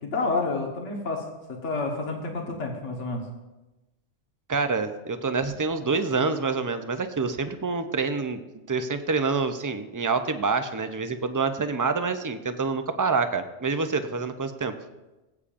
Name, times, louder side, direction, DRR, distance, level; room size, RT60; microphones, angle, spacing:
voice 1, 0.0-1.2 1.6-3.2, left 3 dB, 85° left, 1 dB, 1.6 m, -29 dB
voice 2, 4.5-8.4 8.7-14.7, right 4 dB, 30° right, 8 dB, 0.3 m, -27 dB
19.0 x 8.4 x 2.5 m, 1.1 s
omnidirectional pair, 1.2 m